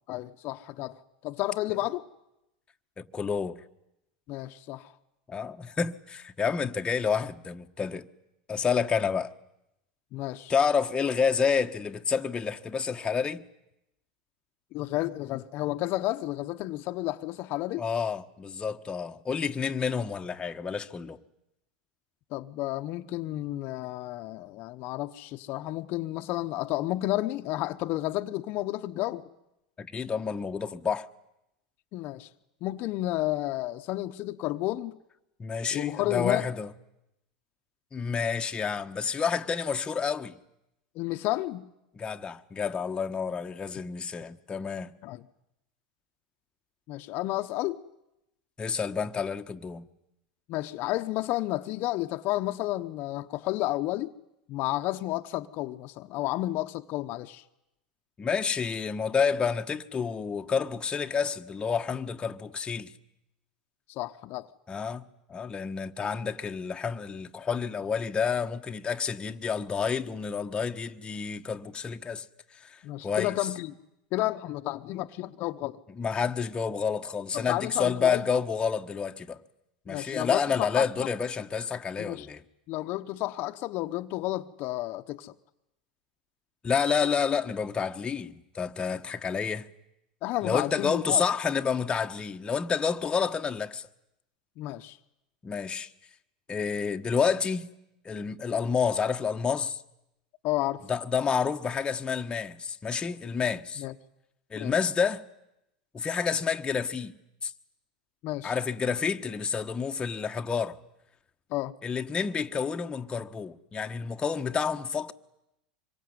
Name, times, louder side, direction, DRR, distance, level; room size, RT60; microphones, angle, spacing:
voice 1, 0.1-2.1 4.3-4.9 10.1-10.5 14.7-17.9 22.3-29.3 31.9-32.3 32.6-35.0 35.7-36.5 40.9-41.7 45.0-45.2 46.9-47.8 50.5-54.1 54.5-57.4 63.9-64.5 72.8-73.7 74.1-75.8 77.3-78.3 79.9-81.1 82.0-82.3 82.7-85.3 90.2-91.2 94.6-95.0 100.4-100.8 103.8-103.9 104.6-104.7 108.2-108.5 111.5-111.7, left 16 dB, 55° left, 1.1 m, -31 dB
voice 2, 3.0-3.6 5.3-8.1 8.5-9.3 10.5-13.4 17.8-21.2 29.8-31.1 35.4-36.7 37.9-40.4 42.0-44.9 48.6-49.9 58.2-62.9 64.7-72.2 72.6-73.3 76.0-79.4 79.9-82.4 86.6-89.7 90.4-93.8 95.4-95.9 96.5-97.7 98.0-99.8 100.9-103.8 104.5-105.2 105.9-107.1 107.4-107.5 108.4-110.8 111.8-115.1, left 6 dB, 20° left, 1.3 m, -29 dB
25.5 x 23.0 x 9.7 m
hypercardioid pair, 100°, 4 cm